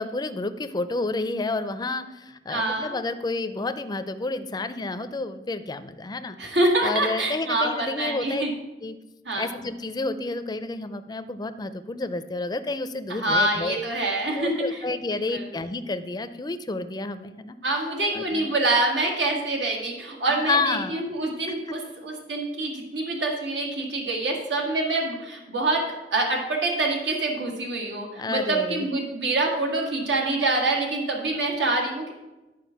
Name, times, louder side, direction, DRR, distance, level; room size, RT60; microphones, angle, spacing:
voice 1, 0.0-6.4 6.8-8.4 8.8-8.9 9.4-13.8 14.4-17.6 18.1-18.5 20.3-21.0 21.7-21.8 28.2-28.9, left 3 dB, 25° left, 11 dB, 0.5 m, -30 dB
voice 2, 2.5-3.0 6.4-8.5 9.3-9.5 13.1-14.8 15.1-15.5 17.6-32.1, right 2 dB, 80° right, 0 dB, 1.8 m, -26 dB
11.0 x 4.8 x 5.7 m, 1.1 s
head